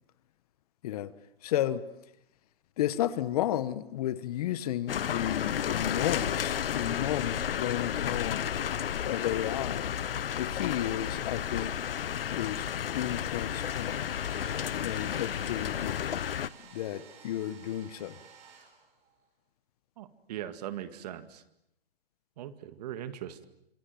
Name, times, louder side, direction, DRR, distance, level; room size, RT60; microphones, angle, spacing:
voice 1, 1.4-1.8 2.8-8.5 9.0-10.0 10.4-11.7 12.3-14.1 14.8-16.2 16.7-18.1, left 12 dB, 40° left, 1.2 m, -33 dB
sound 1, 4.9-16.5, left 9 dB, 65° left, 1.0 m, -32 dB
Domestic sounds home sounds, 13.4-19.2, right 7 dB, 25° right, 5.6 m, -53 dB
voice 2, 20.0-21.4 22.4-23.4, right 11 dB, 40° right, 2.0 m, -40 dB
26.5 x 23.5 x 9.2 m
hypercardioid pair, 145°, 30 cm